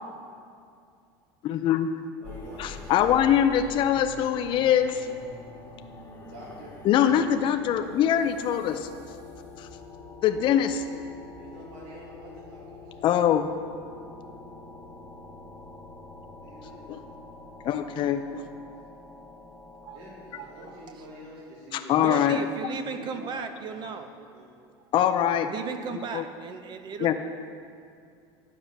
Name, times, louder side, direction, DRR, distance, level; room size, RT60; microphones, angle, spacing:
voice 1, 1.4-1.9 2.6-5.1 6.8-8.9 9.6-9.7 10.2-10.8 13.0-13.5 16.9-17.0 17.6-18.4 21.7-22.4 24.9-25.5 26.1-26.2 27.0-27.1, left 10 dB, 40° left, 8 dB, 0.5 m, -23 dB
sound 1, 2.2-21.4, left 3 dB, 15° left, 1.2 m, -46 dB
voice 2, 2.2-3.7 4.3-4.4 6.2-6.7 7.0-7.2 8.3-8.5 11.4-13.1 16.4-16.9 19.9-22.0 22.8-24.5 26.4-26.5, equal, 75° right, -4 dB, 2.1 m, -47 dB
voice 3, 20.3-21.1 21.9-24.1 25.4-27.1, right 6 dB, 35° right, 8 dB, 0.7 m, -36 dB
9.8 x 4.9 x 6.5 m, 2.4 s
supercardioid pair, 120°, 13 cm